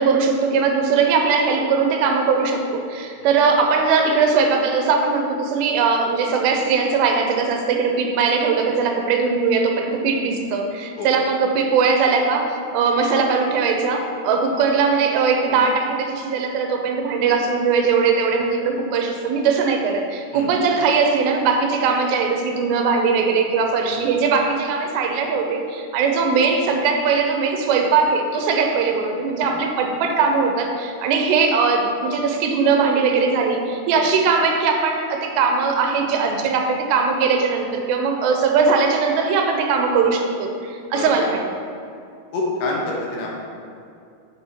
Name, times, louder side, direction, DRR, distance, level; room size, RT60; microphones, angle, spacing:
voice 1, 0.0-41.4, right 5 dB, 80° right, 3 dB, 2.9 m, -20 dB
voice 2, 42.3-43.3, left 2 dB, 70° left, -3 dB, 2.9 m, -27 dB
7.4 x 6.8 x 4.4 m, 2.5 s
omnidirectional pair, 4.9 m